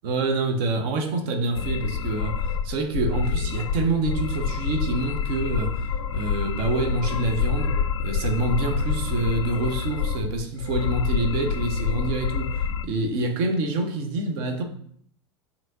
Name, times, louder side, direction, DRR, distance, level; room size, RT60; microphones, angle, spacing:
voice 1, 0.0-5.8 6.1-14.6, right 2 dB, 50° right, 0.8 m, -27 dB
sound 1, 1.5-12.9, left 6 dB, 70° left, 0.4 m, -27 dB
7.2 x 2.7 x 2.6 m
figure-of-eight pair, 80°, 16 cm